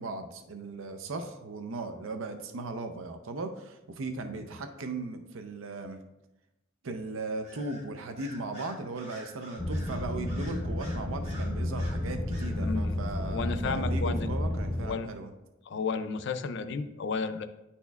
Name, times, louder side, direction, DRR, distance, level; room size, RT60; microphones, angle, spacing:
voice 1, 0.0-6.0 6.8-15.3, right 3 dB, 75° right, 6 dB, 0.5 m, -37 dB
Bird vocalization bird call bird song, 7.4-7.8 8.2-12.0 12.3-12.5, right 1 dB, 30° right, 1.6 m, -48 dB
sound 1, 9.6-14.9, left 1 dB, 10° left, 0.5 m, -31 dB
voice 2, 12.6-13.0 13.3-14.3 14.8-15.1 15.7-17.5, left 4 dB, 60° left, 10 dB, 0.4 m, -32 dB
10.0 x 4.2 x 2.3 m, 0.94 s
head